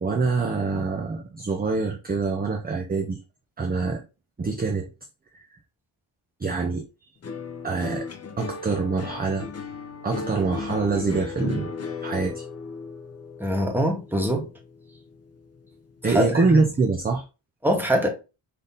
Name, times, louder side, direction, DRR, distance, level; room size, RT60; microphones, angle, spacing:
voice 1, 0.0-3.2 3.6-4.0 4.4-4.9 5.3-5.4 6.4-6.9 7.6-8.1 8.4-9.5 10.0-11.7 12.0-12.4 16.0-17.2, right 4 dB, 20° right, 0.5 m, -25 dB
sound 1, 7.2-15.7 16.0-16.6, left 4 dB, 30° left, 0.6 m, -36 dB
voice 2, 13.4-14.5 16.0-16.5 17.6-18.1, equal, 5° right, 0.9 m, -23 dB
4.1 x 2.7 x 3.5 m
wide cardioid pair, 125°, 48 cm